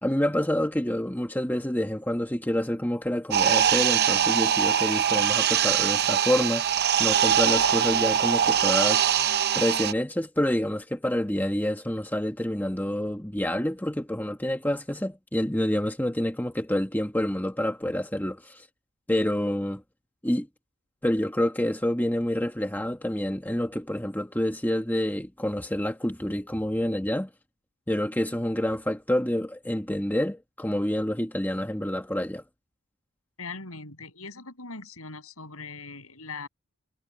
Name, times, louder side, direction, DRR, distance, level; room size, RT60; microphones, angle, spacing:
voice 1, 0.0-9.0 9.5-18.7 19.1-19.8 20.2-20.5 21.0-27.3 27.9-32.4, left 1 dB, 10° left, 1.6 m, -28 dB
sound 1, 3.3-9.9, right 9 dB, 45° right, 0.6 m, -22 dB
voice 2, 33.4-36.5, left 4 dB, 70° left, 7.7 m, -40 dB
head